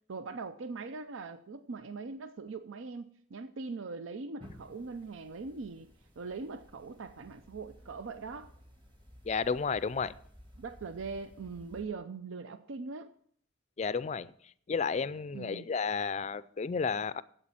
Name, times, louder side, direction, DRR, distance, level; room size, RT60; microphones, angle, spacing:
voice 1, 0.1-8.5 10.6-13.1 15.3-15.7, right 4 dB, 85° right, 0.6 m, -41 dB
sound 1, 4.4-11.8, equal, 25° right, 1.7 m, -56 dB
voice 2, 9.3-10.1 13.8-14.3 14.7-17.2, left 5 dB, 35° left, 0.3 m, -32 dB
8.3 x 8.0 x 7.6 m
head